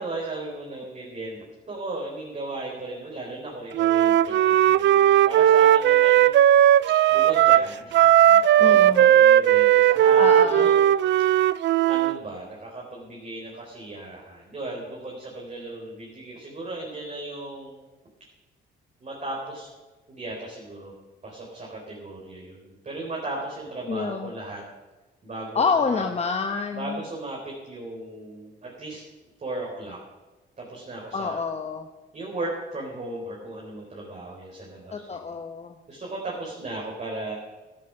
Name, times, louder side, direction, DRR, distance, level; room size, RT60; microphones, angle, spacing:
voice 1, 0.0-6.3 7.1-11.0 11.3-11.4 11.8-17.8 19.0-19.7 20.1-20.9 21.2-24.6 25.2-26.0 26.7-29.0 29.4-30.0 30.6-31.4 32.1-35.1 35.9-37.4, right 2 dB, 35° right, -3 dB, 4.0 m, -36 dB
Wind instrument woodwind instrument, 3.8-12.2, right 11 dB, 65° right, 0.4 m, -17 dB
voice 2, 8.6-9.1 10.2-10.7 23.9-24.3 25.5-27.0 31.1-31.9 34.9-35.8, left 5 dB, 30° left, 5 dB, 1.1 m, -27 dB
13.5 x 12.5 x 5.8 m, 1.2 s
cardioid pair, 90°, 20 cm